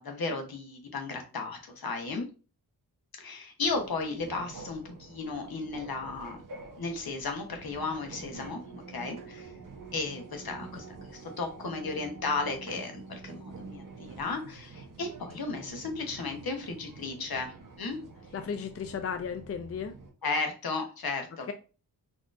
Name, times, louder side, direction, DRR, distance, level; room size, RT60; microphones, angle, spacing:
voice 1, 0.0-2.2 3.1-6.4 6.8-9.5 9.9-18.0 20.2-21.5, left 3 dB, 65° left, 4 dB, 1.0 m, -35 dB
sound 1, 3.6-20.1, right 3 dB, 50° right, 0.8 m, -47 dB
voice 2, 18.3-19.9 21.5-21.6, left 7 dB, 40° left, 7 dB, 0.4 m, -35 dB
4.1 x 2.9 x 2.5 m, 0.34 s
wide cardioid pair, 100°, 40 cm